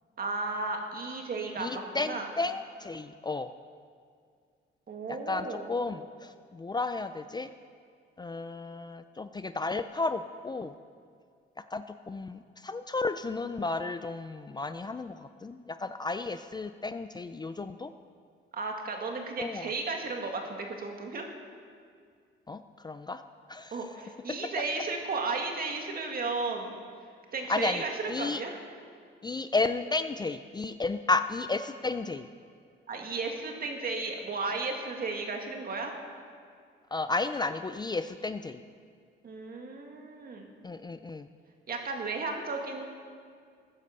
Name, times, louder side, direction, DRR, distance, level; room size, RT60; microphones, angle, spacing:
voice 1, 0.2-2.3 4.9-5.7 18.5-21.3 23.7-26.8 27.3-28.6 32.9-35.9 39.2-40.5 41.7-42.9, right 3 dB, 50° right, 2 dB, 2.2 m, -34 dB
voice 2, 1.6-3.5 5.1-7.5 8.2-10.7 11.7-17.9 19.4-19.7 22.5-23.2 23.5-23.8 24.3-24.4 27.5-28.4 29.2-32.3 36.9-38.6 40.6-41.3, left 3 dB, 20° left, 11 dB, 0.4 m, -33 dB
14.5 x 9.7 x 6.7 m, 2.2 s
cardioid pair, 90°, 20 cm